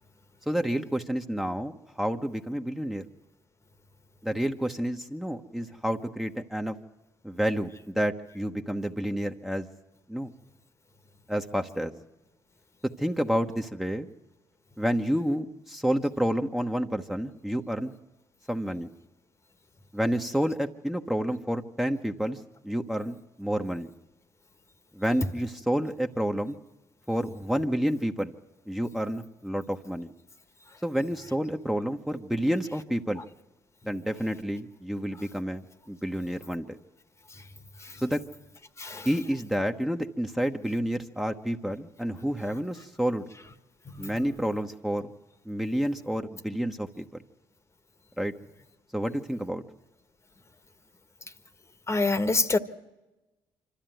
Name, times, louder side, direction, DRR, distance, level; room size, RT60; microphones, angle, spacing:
voice 1, 0.5-3.0 4.2-6.7 7.2-9.7 10.1-10.3 11.3-11.9 13.0-14.1 14.8-17.9 18.5-18.9 19.9-22.4 22.6-23.9 24.9-26.6 27.1-28.3 28.7-30.1 30.8-33.2 33.8-36.8 38.0-38.2 39.0-43.2 44.0-45.0 45.4-47.2 48.2-48.3 48.9-49.6, equal, 5° right, 1.1 m, -29 dB
voice 2, 51.9-52.6, left 3 dB, 30° left, 1.4 m, -25 dB
25.5 x 13.0 x 9.2 m
supercardioid pair, 70°, 10 cm